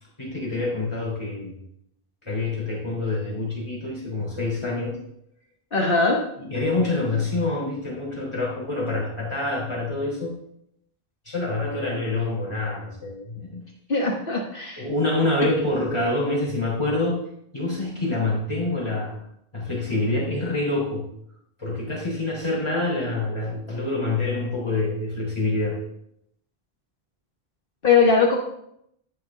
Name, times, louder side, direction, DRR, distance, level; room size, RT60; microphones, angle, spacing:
voice 1, 0.2-1.6 2.2-5.0 6.4-10.3 11.3-13.6 14.8-17.2 17.5-19.2 19.5-21.1 21.6-25.8, left 2 dB, 30° left, -4 dB, 3.7 m, -26 dB
voice 2, 5.7-6.2 13.9-14.8 27.8-28.4, left 4 dB, 60° left, 0 dB, 1.3 m, -20 dB
10.5 x 8.3 x 3.7 m, 0.75 s
omnidirectional pair, 1.0 m